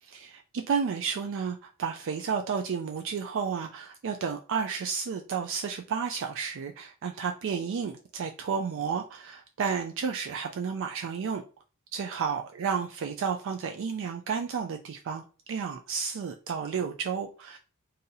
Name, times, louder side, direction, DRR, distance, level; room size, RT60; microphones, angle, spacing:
voice 1, 0.0-11.4 11.9-15.2 15.5-17.6, right 6 dB, 60° right, 0.4 m, -32 dB
2.7 x 2.6 x 3.9 m
head